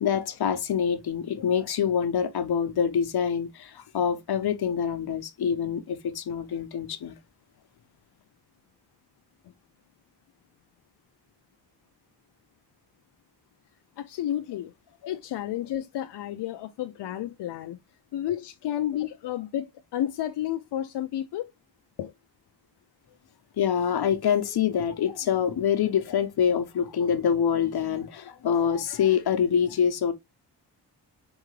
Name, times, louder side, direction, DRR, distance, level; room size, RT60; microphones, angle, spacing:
voice 1, 0.0-7.2 23.6-30.1, left 8 dB, 70° left, 1.0 m, -25 dB
voice 2, 14.0-14.7 15.1-17.8 18.1-21.4 22.0-22.1, left 12 dB, 90° left, 0.6 m, -31 dB
4.7 x 3.6 x 3.2 m
wide cardioid pair, 120°, 40 cm